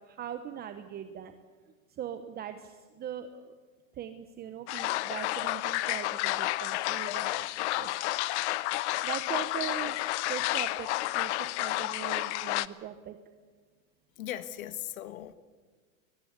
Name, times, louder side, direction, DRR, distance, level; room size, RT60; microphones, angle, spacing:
voice 1, 0.0-1.3 1.9-3.5 3.9-7.5 7.8-7.9 9.0-10.9 11.1-13.2, right 10 dB, 25° right, 1.1 m, -40 dB
sound 1, 4.7-12.7, left 18 dB, 55° left, 0.9 m, -31 dB
voice 2, 14.2-15.3, left 12 dB, 80° left, 1.5 m, -38 dB
23.0 x 22.0 x 8.3 m
supercardioid pair, 140°, 41 cm